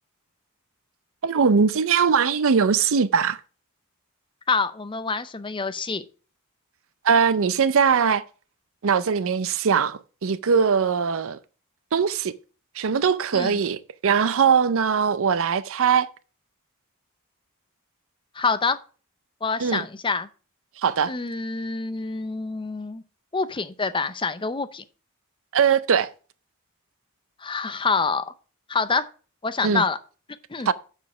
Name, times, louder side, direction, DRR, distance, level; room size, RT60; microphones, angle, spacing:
voice 1, 1.2-3.4 7.0-8.2 8.8-11.4 11.9-12.3 12.8-16.1 19.6-19.8 20.8-21.1 25.5-26.1 29.6-29.8 30.7-30.8, right 6 dB, 65° right, 0.5 m, -21 dB
voice 2, 4.5-6.0 13.3-13.6 18.4-18.8 19.4-20.3 21.1-23.0 23.3-24.8 27.4-28.2 28.7-29.1 29.4-30.0 30.5-30.7, left 4 dB, 25° left, 0.6 m, -26 dB
7.0 x 6.3 x 5.9 m
head